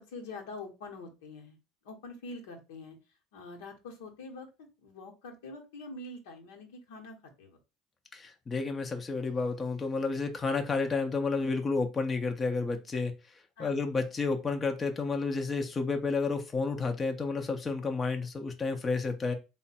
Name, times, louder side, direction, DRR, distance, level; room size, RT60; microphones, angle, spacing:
voice 1, 0.0-1.6 1.8-3.0 3.3-4.5 4.8-7.6 13.6-13.8, left 2 dB, 80° left, 1 dB, 1.0 m, -45 dB
voice 2, 8.1-19.3, left 4 dB, 30° left, 5 dB, 0.6 m, -31 dB
3.5 x 2.2 x 4.1 m, 0.28 s
hypercardioid pair, 75°, 0 cm